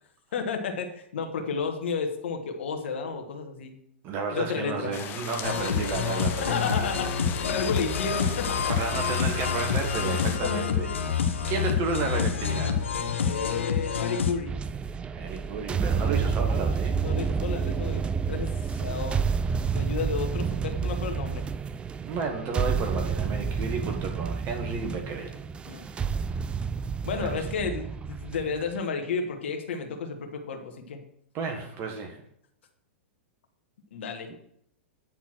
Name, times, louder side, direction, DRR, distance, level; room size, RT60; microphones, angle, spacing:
voice 1, 0.3-3.7 4.3-4.9 6.4-8.7 10.0-10.9 13.2-14.5 17.0-19.2 19.7-21.4 25.7-25.9 27.0-31.0 33.9-34.3, left 5 dB, 70° left, 4 dB, 1.4 m, -32 dB
voice 2, 4.0-6.7 8.7-10.9 11.5-12.9 15.1-17.0 22.0-25.3 25.8-26.0 27.2-27.5 31.3-32.2, right 4 dB, 40° right, 4 dB, 1.4 m, -32 dB
sound 1, 4.9-10.4, left 10 dB, 35° left, 0.8 m, -38 dB
sound 2, 5.4-14.3, left 6 dB, 85° left, 1.1 m, -28 dB
sound 3, 14.5-28.8, right 5 dB, 15° right, 0.3 m, -29 dB
9.2 x 4.3 x 6.1 m, 0.70 s
hypercardioid pair, 115°, 7 cm